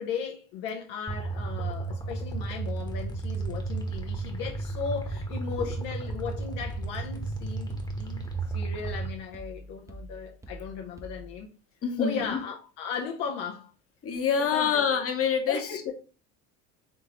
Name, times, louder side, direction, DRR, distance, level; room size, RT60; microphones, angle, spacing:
voice 1, 0.0-8.3 8.5-11.5 12.0-13.7 14.4-14.9 15.5-15.9, left 6 dB, 60° left, 0.8 m, -36 dB
sound 1, 1.1-9.1, right 3 dB, 10° left, 1.1 m, -33 dB
sound 2, 3.9-11.5, equal, 5° right, 0.7 m, -45 dB
voice 2, 11.8-12.4 14.0-15.9, left 7 dB, 30° left, 1.1 m, -26 dB
3.6 x 3.6 x 2.9 m
hypercardioid pair, 65°, 46 cm